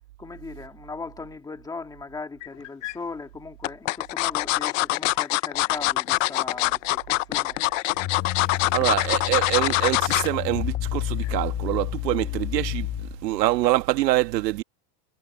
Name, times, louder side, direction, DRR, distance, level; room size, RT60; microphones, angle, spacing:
voice 1, 0.2-7.6, left 4 dB, 10° left, 2.2 m, -38 dB
sound 1, 2.4-2.9 3.6-10.3 10.7-11.0 11.3-11.4, left 19 dB, 55° left, 0.5 m, -24 dB
sound 2, 8.0-13.4, left 14 dB, 25° left, 1.3 m, -31 dB
voice 2, 8.7-14.6, right 16 dB, 90° right, 1.8 m, -25 dB
supercardioid pair, 175°, 48 cm